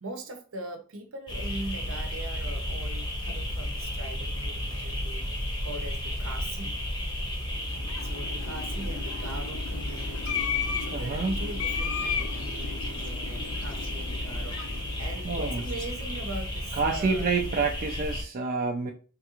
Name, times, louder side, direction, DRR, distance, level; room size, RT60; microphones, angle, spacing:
voice 1, 0.0-5.3 5.6-6.8 8.0-17.3, right 2 dB, 70° right, 0.7 m, -41 dB
sound 1, 1.3-18.2, left 1 dB, 20° left, 0.8 m, -33 dB
sound 2, 7.6-16.1, left 7 dB, 70° left, 0.4 m, -36 dB
voice 2, 10.9-11.4 15.2-15.6 16.8-18.9, right 4 dB, 40° right, 0.4 m, -28 dB
3.3 x 2.4 x 2.9 m
head